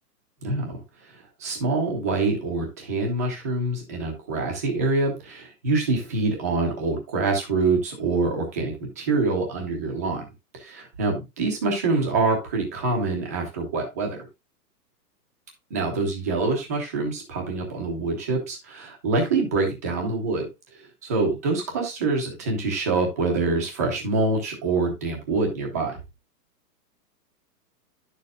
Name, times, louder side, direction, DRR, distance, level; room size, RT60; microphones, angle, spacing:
voice 1, 0.4-0.8 1.4-10.2 10.6-14.3 15.7-20.5 21.0-26.0, right 3 dB, 10° right, 1 dB, 0.7 m, -25 dB
10.5 x 6.6 x 2.5 m, 0.23 s
hypercardioid pair, 180°, 49 cm